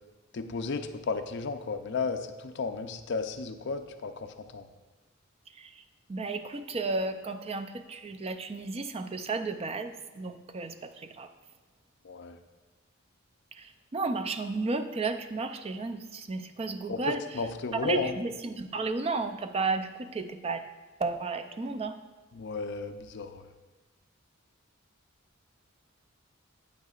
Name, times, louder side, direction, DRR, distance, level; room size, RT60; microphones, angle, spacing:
voice 1, 0.3-4.7 12.0-12.4 16.9-18.2 22.3-23.5, left 4 dB, 55° left, 7 dB, 0.5 m, -34 dB
voice 2, 6.1-11.3 13.5-17.2 17.8-20.6 21.0-22.0, right 3 dB, 30° right, 9 dB, 0.4 m, -33 dB
9.2 x 8.3 x 2.4 m, 1.2 s
head